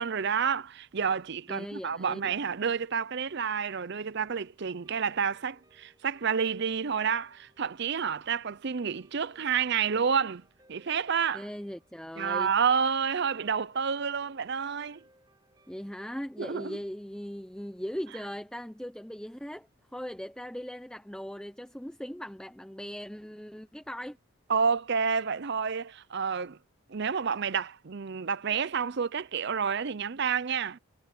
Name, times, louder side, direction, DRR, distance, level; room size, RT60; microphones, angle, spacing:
voice 1, 0.0-10.4 10.7-11.5 12.2-15.0 16.4-16.8 24.5-26.6 26.9-30.8, right 6 dB, 50° right, 0.6 m, -29 dB
voice 2, 1.5-2.3 11.3-12.5 15.7-19.7 19.9-24.2, equal, 5° left, 0.9 m, -39 dB
Guitar, 3.3-17.9, right 1 dB, 20° right, 4.0 m, -66 dB
head